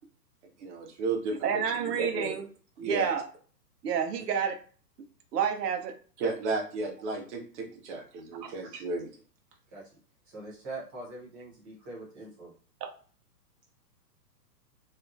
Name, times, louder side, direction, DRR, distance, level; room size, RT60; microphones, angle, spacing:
voice 1, 0.6-1.6 2.0-2.4 2.8-3.1 6.2-9.1, right 3 dB, 45° right, 0 dB, 0.9 m, -33 dB
voice 2, 1.4-2.4 2.8-3.2 3.8-4.6 5.3-5.9 8.4-8.5 12.8-12.9, right 7 dB, 70° right, 5 dB, 0.8 m, -29 dB
voice 3, 10.3-12.5, right 2 dB, 15° right, -6 dB, 0.5 m, -43 dB
2.7 x 2.4 x 2.5 m, 0.42 s
hypercardioid pair, 145°, 49 cm